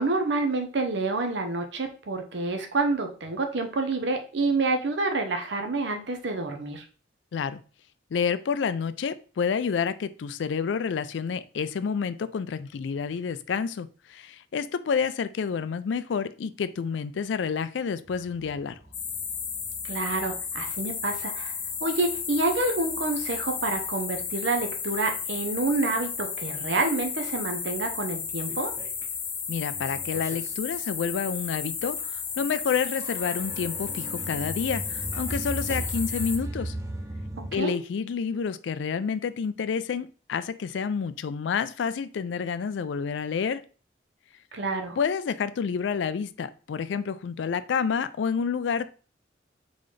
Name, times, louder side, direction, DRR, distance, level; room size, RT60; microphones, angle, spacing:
voice 1, 0.0-6.8 19.8-21.5 21.8-28.7 37.4-37.7 44.5-45.0, right 3 dB, 75° right, 5 dB, 0.8 m, -28 dB
voice 2, 8.1-18.8 29.5-36.7 37.5-43.6 45.0-48.9, left 6 dB, 80° left, 14 dB, 0.4 m, -29 dB
sound 1, 18.1-24.7 25.1-26.2 26.6-26.7 27.0-27.1 27.4-29.2 29.5-37.6, right 1 dB, 15° right, 0.5 m, -39 dB
sound 2, 18.9-36.4, left 6 dB, 40° left, 0.9 m, -33 dB
3.9 x 3.8 x 3.3 m, 0.38 s
head